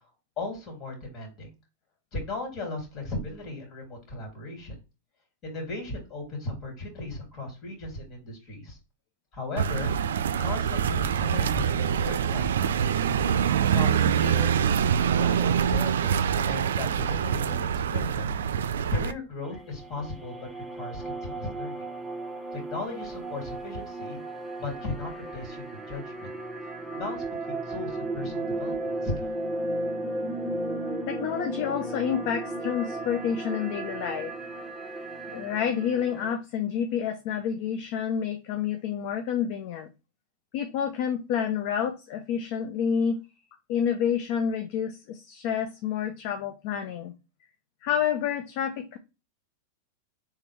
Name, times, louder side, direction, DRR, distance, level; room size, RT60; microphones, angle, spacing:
voice 1, 0.4-1.5 2.1-4.8 5.4-8.8 9.3-9.9 10.4-13.2 13.6-14.7 15.1-18.3 18.9-21.8 22.5-24.2 24.6-26.3 26.9-29.3, left 2 dB, 40° left, 2.9 m, -36 dB
sound 1, 9.6-19.1, right 8 dB, 85° right, 0.4 m, -25 dB
sound 2, 19.4-36.3, right 2 dB, 10° right, 0.9 m, -35 dB
voice 2, 31.1-34.3 35.3-39.9 40.5-43.2 43.7-47.1 47.8-49.0, left 8 dB, 55° left, 0.6 m, -29 dB
4.4 x 3.5 x 3.3 m
hypercardioid pair, 120°, 0 cm